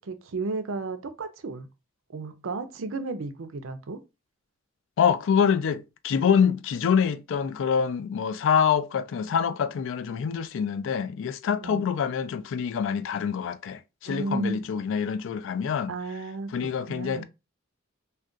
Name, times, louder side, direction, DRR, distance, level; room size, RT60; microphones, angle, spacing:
voice 1, 0.0-1.7 2.1-4.0 11.6-11.9 14.1-14.6 15.9-16.5 16.9-17.2, right 3 dB, 70° right, 0.5 m, -33 dB
voice 2, 5.0-15.9 16.5-17.2, left 7 dB, 65° left, 0.3 m, -25 dB
2.3 x 2.2 x 3.7 m
head